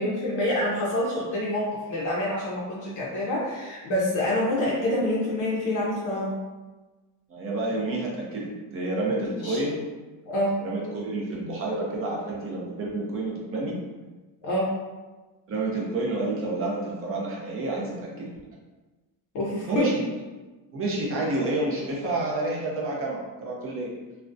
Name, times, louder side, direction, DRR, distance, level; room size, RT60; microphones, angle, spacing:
voice 1, 0.0-6.4 9.4-9.6 10.3-10.6 14.4-14.7 19.3-19.9, left 1 dB, 45° left, -6 dB, 0.5 m, -27 dB
voice 2, 7.3-9.9 10.6-13.8 15.5-18.3 19.7-20.0 20.7-23.9, right 2 dB, 35° right, -3 dB, 0.5 m, -29 dB
2.3 x 2.1 x 2.5 m, 1.2 s
cardioid pair, 160°, 43 cm